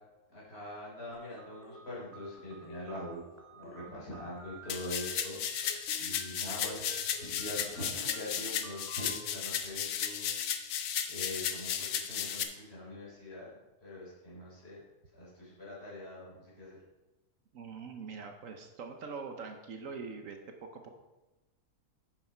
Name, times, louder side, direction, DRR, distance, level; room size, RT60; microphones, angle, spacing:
voice 1, 0.3-3.3 3.5-5.7 6.0-10.4 11.1-14.8 15.1-16.8, left 1 dB, 40° left, -7 dB, 4.1 m, -43 dB
sound 1, 1.1-9.1, right 1 dB, 10° right, 1.3 m, -51 dB
sound 2, 4.7-12.4, left 8 dB, 75° left, 1.2 m, -34 dB
voice 2, 17.5-20.9, right 5 dB, 60° right, 5 dB, 1.2 m, -43 dB
9.5 x 7.0 x 4.5 m, 1.1 s
omnidirectional pair, 1.6 m